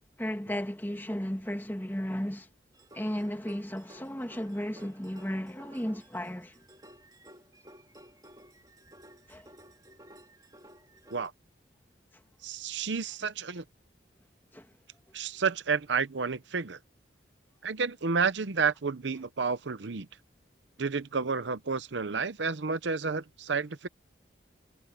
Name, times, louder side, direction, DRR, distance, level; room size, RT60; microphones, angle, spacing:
voice 1, 0.2-2.5 2.9-6.6 9.3-9.5 14.5-14.7, equal, 10° left, 2.3 m, -34 dB
sound 1, 2.7-11.3, equal, 20° right, 4.0 m, -55 dB
voice 2, 12.4-13.6 15.1-16.8 17.6-20.1 20.8-23.9, right 5 dB, 75° right, 0.8 m, -30 dB
head